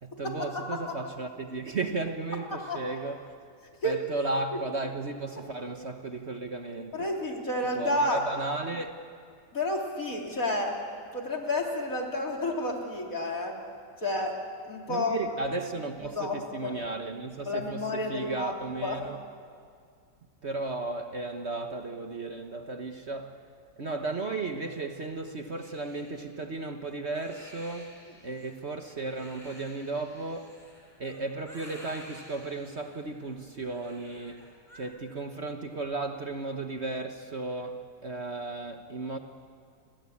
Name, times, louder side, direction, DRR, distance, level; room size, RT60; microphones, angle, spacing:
voice 1, 0.0-3.3 3.8-7.1 7.7-8.9 14.9-19.3 20.4-23.4 23.8-27.9 28.2-30.5 31.0-39.2, right 3 dB, 40° right, 5 dB, 1.4 m, -35 dB
voice 2, 6.9-8.2 9.5-10.7 11.1-13.6 14.0-14.4 14.7-15.2 16.1-16.8 17.5-18.6 18.8-19.0, left 1 dB, 50° left, 0 dB, 3.8 m, -30 dB
Crying sobbing, 25.6-34.8, equal, 20° left, 6.1 m, -52 dB
29.5 x 23.0 x 8.6 m, 2.2 s
omnidirectional pair, 1.8 m